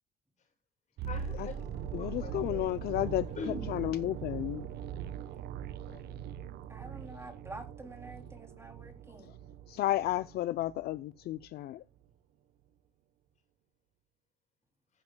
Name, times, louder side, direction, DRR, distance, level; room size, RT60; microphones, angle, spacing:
voice 1, 1.0-2.7 3.4-3.7 5.9-6.1, left 3 dB, 45° left, 7.0 m, -43 dB
sound 1, 1.0-11.0 11.2-11.5, right 8 dB, 75° right, 1.1 m, -41 dB
voice 2, 1.9-3.3 3.7-4.7 9.7-11.8, left 14 dB, 70° left, 0.6 m, -32 dB
voice 3, 6.7-9.3, right 2 dB, 15° right, 3.1 m, -48 dB
15.0 x 9.5 x 2.3 m
cardioid pair, 110°, 17 cm